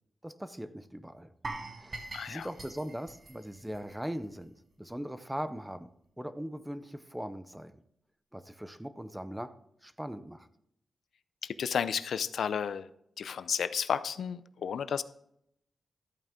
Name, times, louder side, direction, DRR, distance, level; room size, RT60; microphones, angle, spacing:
voice 1, 0.2-1.3 1.8-5.9 6.2-7.7 8.3-9.6 9.8-10.5, equal, 5° right, 12 dB, 0.5 m, -40 dB
sound 1, 1.4-4.4 4.7-4.9 5.4-5.5, right 2 dB, 30° right, 1.1 m, -43 dB
voice 2, 2.1-2.5 11.4-12.9 13.2-15.0, left 7 dB, 80° left, 14 dB, 0.5 m, -32 dB
13.5 x 9.0 x 3.7 m, 0.74 s
wide cardioid pair, 175°, 0 cm